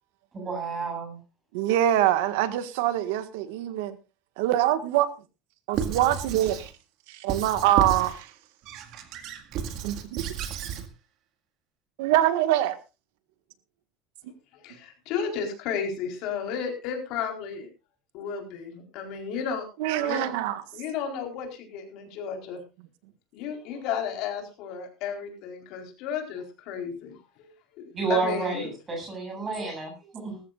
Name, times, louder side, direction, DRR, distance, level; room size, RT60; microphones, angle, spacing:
voice 1, 0.3-1.2 28.0-30.4, right 4 dB, 20° right, 7.8 m, -30 dB
voice 2, 1.5-4.0 4.4-5.1 5.7-6.7 7.1-8.3 9.8-10.2 12.0-12.8 19.8-20.6, right 13 dB, 90° right, 1.7 m, -24 dB
Squeak / Writing, 5.7-6.7 7.3-8.2 8.7-10.9, right 7 dB, 45° right, 2.1 m, -32 dB
voice 3, 14.5-17.7 18.1-19.7 20.0-20.3 20.7-22.6 23.3-27.8 28.1-28.7, left 7 dB, 50° left, 4.2 m, -33 dB
20.0 x 14.0 x 2.5 m
cardioid pair, 180°, 0 cm